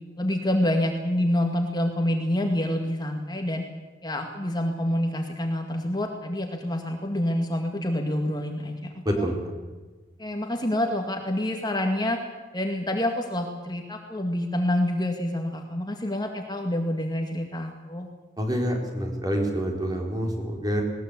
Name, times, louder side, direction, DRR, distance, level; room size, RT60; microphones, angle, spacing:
voice 1, 0.2-3.6 4.0-9.3 10.2-12.2 12.5-18.1, left 1 dB, 25° left, 3 dB, 2.0 m, -27 dB
voice 2, 9.0-9.4 18.4-20.8, equal, 20° right, 2 dB, 4.3 m, -27 dB
20.0 x 19.5 x 8.3 m, 1.3 s
head